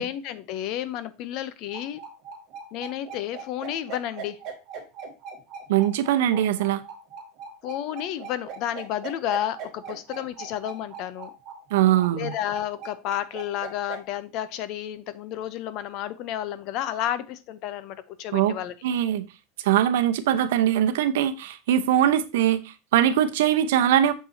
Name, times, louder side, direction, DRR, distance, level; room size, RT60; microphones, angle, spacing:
voice 1, 0.0-2.0 2.7-4.4 6.3-6.4 7.6-11.3 12.1-18.7, left 11 dB, 40° left, 0.6 m, -31 dB
sound 1, 1.7-14.0, right 6 dB, 30° right, 2.6 m, -40 dB
voice 2, 5.7-6.8 11.7-12.3 18.3-18.6 18.8-19.3 19.6-24.1, right 11 dB, 80° right, 0.7 m, -21 dB
6.8 x 5.7 x 2.7 m
supercardioid pair, 170°, 0 cm